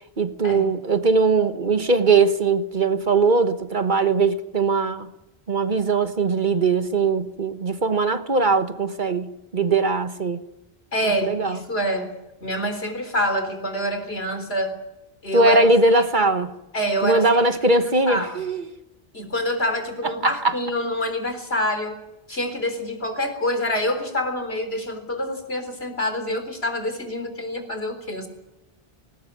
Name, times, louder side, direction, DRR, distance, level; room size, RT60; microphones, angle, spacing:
voice 1, 0.2-5.1 5.5-10.4 11.2-11.6 15.3-16.5 17.0-18.6 20.0-20.5, right 3 dB, 50° right, 1.4 m, -20 dB
voice 2, 10.9-12.1 12.4-14.7 15.2-15.7 16.0-16.1 16.7-17.4 17.7-18.4 19.1-22.0 22.3-28.3, equal, 75° left, 4.2 m, -26 dB
20.0 x 19.0 x 9.1 m
omnidirectional pair, 1.1 m